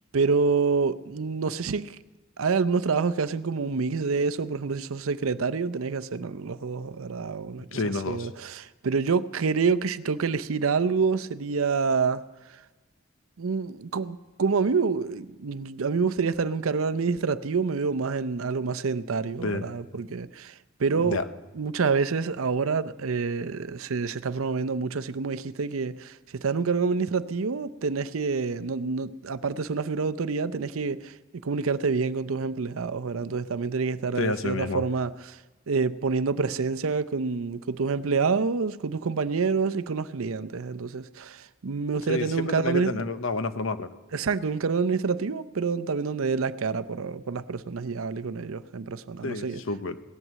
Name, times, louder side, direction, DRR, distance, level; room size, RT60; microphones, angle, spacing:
voice 1, 0.1-2.0 2.4-12.2 12.5-12.6 13.4-21.2 21.6-31.2 31.4-35.4 35.7-43.0 44.1-49.6, right 5 dB, 85° right, 0.6 m, -27 dB
voice 2, 7.7-8.3 19.4-19.7 20.9-21.2 34.1-34.8 42.1-43.9 49.2-50.0, left 3 dB, 75° left, 0.9 m, -29 dB
17.5 x 11.0 x 7.5 m
head